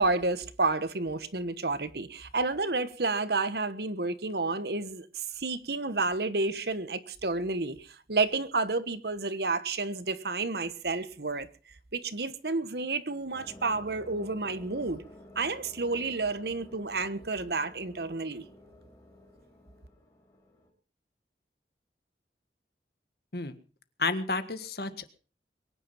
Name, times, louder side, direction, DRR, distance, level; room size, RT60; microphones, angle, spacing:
voice 1, 0.0-11.5 11.9-15.0 15.3-18.4, right 3 dB, 65° right, 1.3 m, -30 dB
sound 1, 13.3-20.7, left 1 dB, 20° left, 4.4 m, -52 dB
voice 2, 24.0-25.1, left 3 dB, 60° left, 1.6 m, -31 dB
22.5 x 10.0 x 5.6 m
head